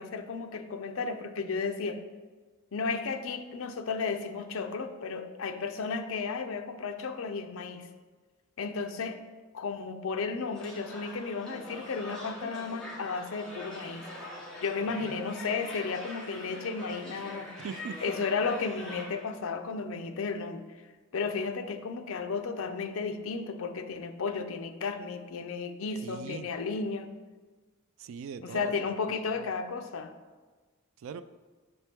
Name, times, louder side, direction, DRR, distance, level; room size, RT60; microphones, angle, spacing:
voice 1, 0.0-2.0 2.7-7.9 8.6-9.2 9.5-14.1 14.6-17.5 18.0-20.6 21.1-27.1 28.4-30.1, left 4 dB, 65° left, 7 dB, 0.5 m, -33 dB
sound 1, 10.5-19.3, left 1 dB, 5° left, 1.3 m, -43 dB
voice 2, 14.9-15.2 17.6-18.0 26.0-26.5 28.0-28.7 29.3-29.5 31.0-31.2, right 6 dB, 65° right, 12 dB, 0.3 m, -41 dB
6.6 x 4.3 x 3.5 m, 1.4 s
head